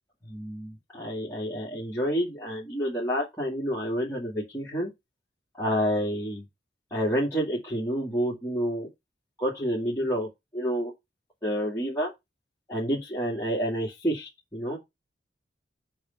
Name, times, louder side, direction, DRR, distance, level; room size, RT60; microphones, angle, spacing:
voice 1, 0.3-4.9 5.6-6.4 6.9-8.9 9.4-10.9 11.4-12.1 12.7-14.8, equal, 15° left, 2.6 m, -29 dB
8.6 x 4.5 x 5.9 m
head